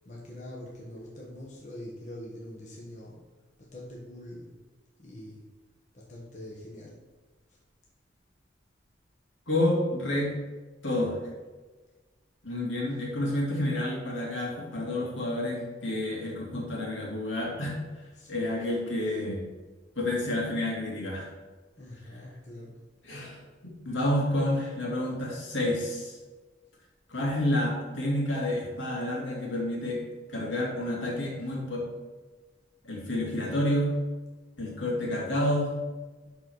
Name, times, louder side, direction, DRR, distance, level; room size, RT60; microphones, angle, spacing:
voice 1, 0.0-3.2 3.7-4.5 5.0-5.4 5.9-7.0 18.1-18.3 19.0-19.1 21.8-22.7, left 1 dB, 40° left, -4 dB, 1.3 m, -44 dB
voice 2, 9.5-10.3 10.8-11.2 12.4-17.8 18.3-19.5 20.0-21.3 23.0-26.2 27.1-31.8 32.8-34.0 34.6-35.7, left 1 dB, 80° left, -2 dB, 2.6 m, -29 dB
12.0 x 4.1 x 4.7 m, 1.3 s
head